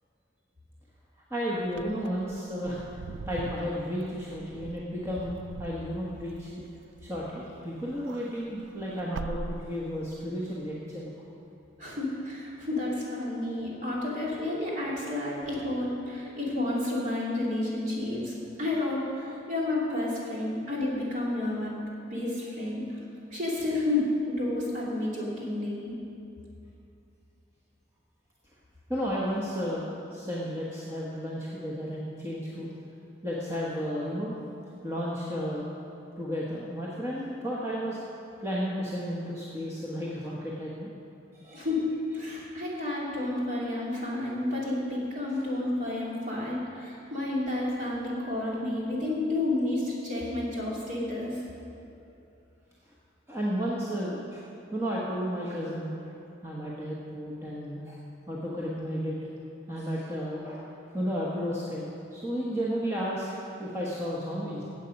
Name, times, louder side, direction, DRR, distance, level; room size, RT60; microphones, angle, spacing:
voice 1, 1.3-2.8 3.3-6.6 7.0-11.1 28.9-32.7 33.2-34.4 34.8-35.7 36.2-38.0 38.4-40.9 41.3-41.7 53.3-54.4 54.7-56.1 56.4-58.0 58.3-59.1 59.7-60.6 60.9-61.8 62.1-64.6, equal, 15° right, -6 dB, 1.2 m, -33 dB
Wind / Car, 1.6-7.5 7.8-10.2, right 4 dB, 80° right, 0.4 m, -42 dB
voice 2, 11.8-18.3 18.6-21.8 22.1-23.0 23.3-25.9 41.5-51.4, left 2 dB, 45° right, -6 dB, 3.0 m, -30 dB
16.0 x 8.1 x 5.3 m, 2.7 s
head